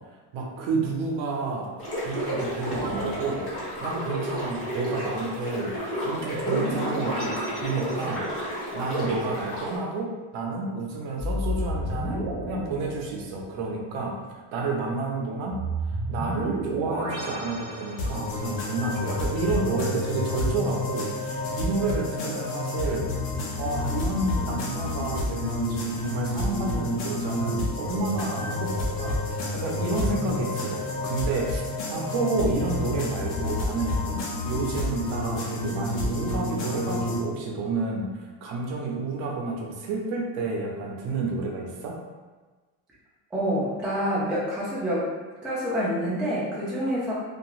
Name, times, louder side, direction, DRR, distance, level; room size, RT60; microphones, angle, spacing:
voice 1, 0.3-3.4 3.8-5.7 6.0-8.2 8.7-14.2 14.5-15.6 15.9-23.2 23.6-31.6 31.9-42.0, right 3 dB, 65° right, -1 dB, 0.7 m, -30 dB
sound 1, 1.8-9.8, equal, 25° left, 1.1 m, -32 dB
sound 2, 2.7-4.2 6.4-8.5 11.2-13.7 15.5-18.5, right 1 dB, 20° right, 0.9 m, -32 dB
sound 3, 18.0-37.2, left 2 dB, 60° left, 0.9 m, -29 dB
voice 2, 43.3-45.1 45.4-47.1, equal, ahead, -7 dB, 0.3 m, -27 dB
2.8 x 2.5 x 2.4 m, 1.3 s
cardioid pair, 145°, 49 cm